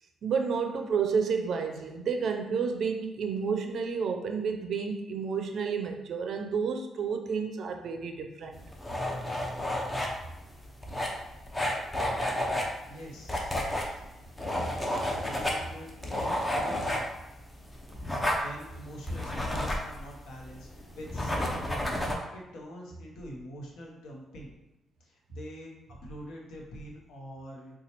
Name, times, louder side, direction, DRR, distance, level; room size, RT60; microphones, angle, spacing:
voice 1, 0.2-8.6, right 5 dB, 60° right, 5 dB, 0.4 m, -30 dB
sound 1, 8.5-22.1, left 1 dB, 15° left, 0.6 m, -32 dB
voice 2, 12.9-14.0 15.2-15.9 16.2-17.1 18.4-24.5 25.0-25.7 26.0-27.8, equal, 80° left, -1 dB, 0.8 m, -45 dB
4.1 x 2.3 x 2.9 m, 0.94 s
cardioid pair, 90°, 0 cm